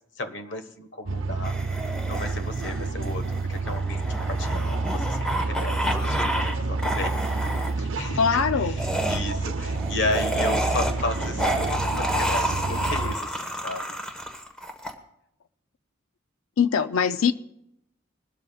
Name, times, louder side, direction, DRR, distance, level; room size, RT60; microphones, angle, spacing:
voice 1, 0.2-1.5 1.8-7.2 7.8-13.9, left 2 dB, 60° left, 1.3 m, -34 dB
sound 1, 1.1-13.2, right 3 dB, 75° right, 0.7 m, -29 dB
sound 2, 1.4-6.5 6.8-7.7 8.8-14.9, equal, 5° left, 1.2 m, -29 dB
voice 2, 8.2-8.8 16.6-17.3, left 6 dB, 90° left, 0.5 m, -22 dB
21.5 x 12.5 x 2.3 m
head